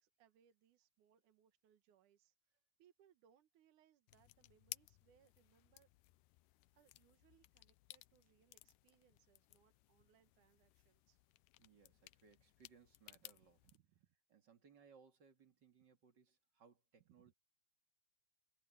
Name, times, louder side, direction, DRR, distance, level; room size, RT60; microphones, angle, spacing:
voice 1, 0.0-5.9 6.7-11.3 13.4-14.1 17.1-17.3, right 10 dB, 65° right, 2.5 m, -74 dB
sound 1, 4.1-13.8, left 20 dB, 80° left, 2.1 m, -59 dB
voice 2, 11.6-13.6 14.3-17.3, right 6 dB, 35° right, 2.1 m, -67 dB
omnidirectional pair, 4.1 m